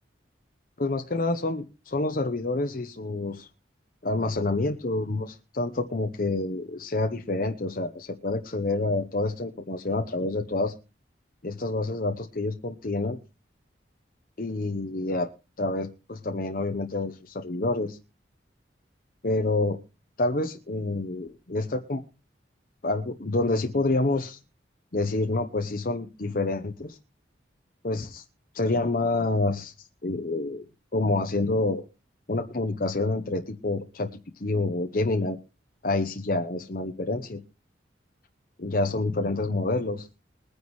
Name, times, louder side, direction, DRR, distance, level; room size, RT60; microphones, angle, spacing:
voice 1, 0.8-3.5 4.0-10.7 11.4-13.2 14.4-15.3 15.6-18.0 19.2-19.8 20.2-22.0 22.8-24.4 24.9-27.0 27.8-28.2 28.5-29.7 30.0-30.6 30.9-31.8 32.3-34.1 34.4-35.4 35.8-37.4 38.6-40.1, left 2 dB, 50° left, 6 dB, 0.8 m, -28 dB
21.5 x 9.7 x 3.1 m, 0.31 s
head